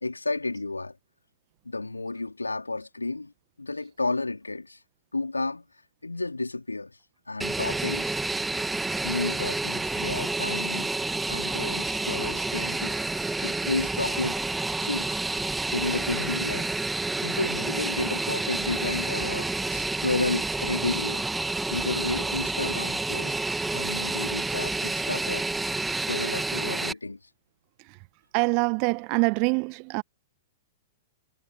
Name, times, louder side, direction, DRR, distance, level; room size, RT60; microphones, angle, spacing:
voice 1, 0.0-0.9 1.6-3.3 3.6-4.8 5.1-5.7 6.0-7.0 7.3-8.2 9.0-10.9 11.3-13.0 13.4-14.4 14.8-15.2 15.7-21.3 21.7-23.4 23.7-25.5 25.9-27.2, left 3 dB, 80° left, 3.7 m, -32 dB
Fixed-wing aircraft airplane, 7.4-26.9, right 3 dB, 5° right, 2.2 m, -29 dB
voice 2, 28.3-30.0, right 36 dB, 40° right, 1.5 m, -25 dB
figure-of-eight pair, 105°, 0 cm